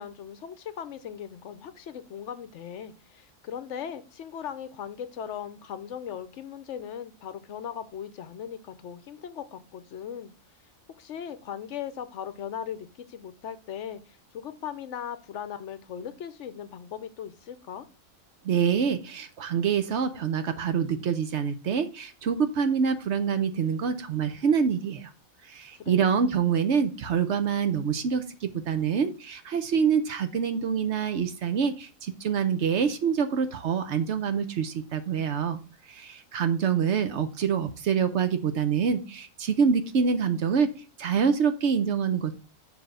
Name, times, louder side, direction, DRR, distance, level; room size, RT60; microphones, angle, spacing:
voice 1, 0.0-10.3 11.0-17.9 25.7-26.1, left 8 dB, 65° left, 12 dB, 0.9 m, -38 dB
voice 2, 18.4-25.1 25.5-35.6 35.9-40.7 41.0-42.4, right 7 dB, 60° right, 10 dB, 0.9 m, -26 dB
7.1 x 3.4 x 6.1 m, 0.35 s
omnidirectional pair, 1.4 m